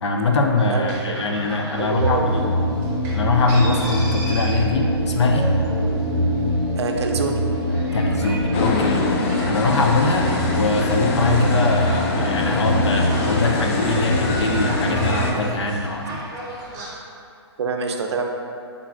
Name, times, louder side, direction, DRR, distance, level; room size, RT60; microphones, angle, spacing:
voice 1, 0.0-2.4 3.1-5.5 7.9-9.0 9.4-16.2, left 3 dB, 85° left, 2 dB, 0.5 m, -22 dB
sound 1, 0.6-16.9, right 1 dB, 20° right, 0.7 m, -37 dB
voice 2, 0.7-2.6 6.8-7.4 17.6-18.3, right 4 dB, 75° right, 3 dB, 0.5 m, -27 dB
sound 2, 2.0-15.3, equal, 55° left, 1.5 m, -24 dB
sound 3, 8.5-15.3, left 2 dB, 30° left, 0.3 m, -26 dB
4.0 x 3.7 x 2.4 m, 2.5 s
hypercardioid pair, 145°, 14 cm